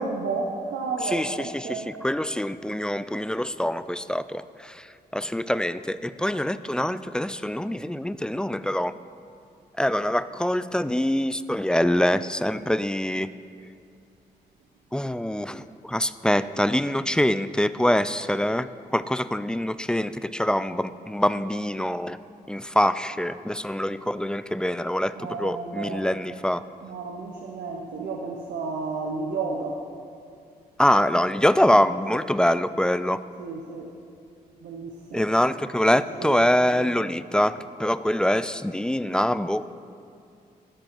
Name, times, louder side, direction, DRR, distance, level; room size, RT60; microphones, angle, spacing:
voice 1, 0.0-1.9 25.2-26.1 26.8-29.8 33.4-33.9 34.6-35.3 35.9-36.9, right 4 dB, 80° right, 1 dB, 0.7 m, -32 dB
voice 2, 1.0-8.9 9.8-13.3 14.9-22.2 22.5-26.6 30.8-33.2 35.1-39.6, left 1 dB, 5° left, 14 dB, 0.3 m, -24 dB
13.0 x 5.3 x 4.4 m, 2.4 s
supercardioid pair, 45°, 17 cm